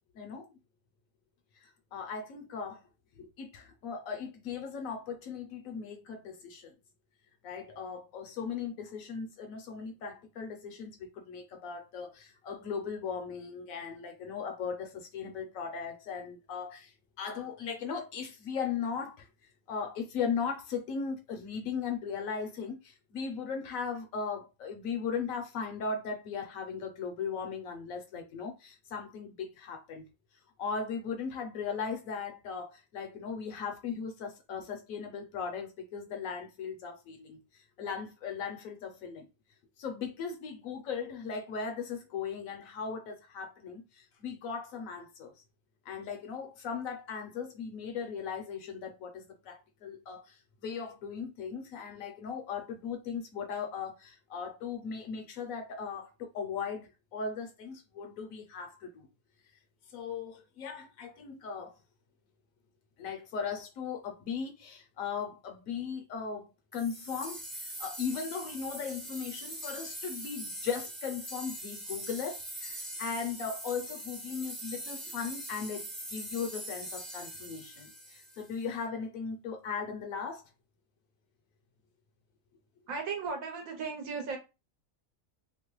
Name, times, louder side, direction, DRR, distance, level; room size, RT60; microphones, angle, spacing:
voice 1, 0.1-0.5 1.6-2.8 3.2-6.7 7.4-19.3 19.7-30.0 30.6-39.3 39.8-45.4 45.8-59.1 59.9-61.8 63.0-80.4, left 6 dB, 70° left, 1.0 m, -38 dB
sound 1, 66.7-78.7, right 1 dB, ahead, 0.6 m, -42 dB
voice 2, 82.9-84.4, right 5 dB, 70° right, 1.2 m, -36 dB
2.9 x 2.1 x 3.0 m
omnidirectional pair, 1.6 m